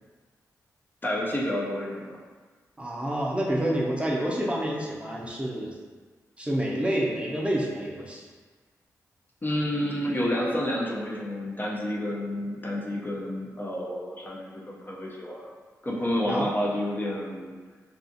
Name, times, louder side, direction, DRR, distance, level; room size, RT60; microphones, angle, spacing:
voice 1, 1.0-2.2 9.4-15.4 15.8-17.6, left 1 dB, 30° left, -4 dB, 0.5 m, -29 dB
voice 2, 2.8-5.8 6.4-8.2 16.3-16.5, right 1 dB, 15° right, -4 dB, 0.5 m, -28 dB
2.4 x 2.4 x 2.6 m, 1.4 s
supercardioid pair, 40°, 7 cm